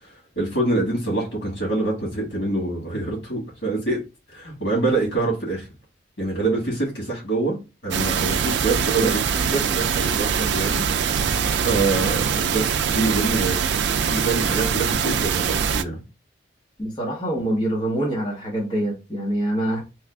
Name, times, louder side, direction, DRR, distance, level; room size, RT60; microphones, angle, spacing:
voice 1, 0.4-4.0 4.3-5.7 6.2-7.6 7.8-11.4 11.6-13.6 14.0-16.0, right 2 dB, 70° left, 1.8 m, -25 dB
sound 1, 7.9-15.8, right 7 dB, 65° right, 0.3 m, -23 dB
voice 2, 16.8-19.8, right 1 dB, 25° left, 1.1 m, -25 dB
3.1 x 2.4 x 3.3 m
head